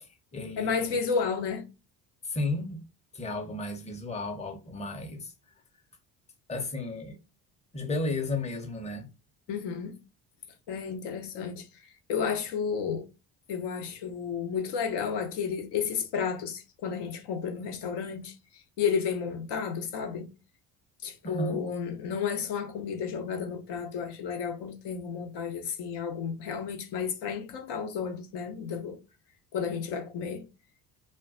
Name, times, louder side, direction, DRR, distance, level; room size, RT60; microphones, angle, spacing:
voice 1, 0.0-1.0 2.2-2.8 3.1-5.3 6.5-7.2 7.7-9.1 21.2-21.6, left 2 dB, 15° left, 0.7 m, -33 dB
voice 2, 0.6-1.6 9.5-10.0 10.7-11.7 12.1-13.0 13.5-18.3 18.8-20.3 21.0-29.0 29.5-30.5, left 6 dB, 65° left, 0.8 m, -32 dB
2.2 x 2.1 x 3.5 m
supercardioid pair, 65°, 44 cm